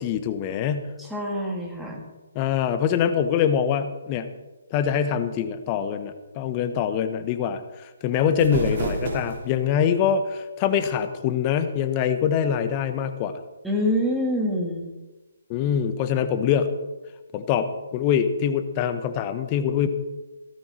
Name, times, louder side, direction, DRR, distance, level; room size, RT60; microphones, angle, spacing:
voice 1, 0.0-0.9 2.3-4.3 4.7-7.6 8.0-13.4 15.5-16.7 17.3-19.9, left 8 dB, 25° left, 9 dB, 1.3 m, -24 dB
voice 2, 1.0-2.0 13.6-14.9, left 1 dB, 5° right, -1 dB, 2.8 m, -26 dB
sound 1, 8.1-9.7, right 2 dB, 50° right, 3.3 m, -30 dB
16.5 x 13.5 x 4.6 m, 1.1 s
figure-of-eight pair, 140°, 0 cm